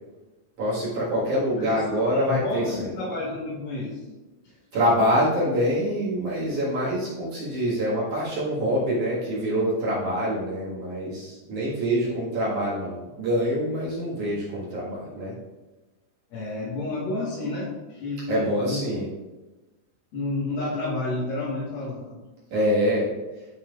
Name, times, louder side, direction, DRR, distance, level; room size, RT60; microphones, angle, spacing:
voice 1, 0.6-2.9 4.7-15.3 18.3-19.1 22.5-23.1, equal, 55° right, -8 dB, 2.6 m, -25 dB
voice 2, 1.6-4.0 12.0-12.1 16.3-18.9 20.1-22.3, left 2 dB, 60° left, -9 dB, 2.8 m, -30 dB
11.5 x 5.8 x 2.4 m, 1.1 s
omnidirectional pair, 5.1 m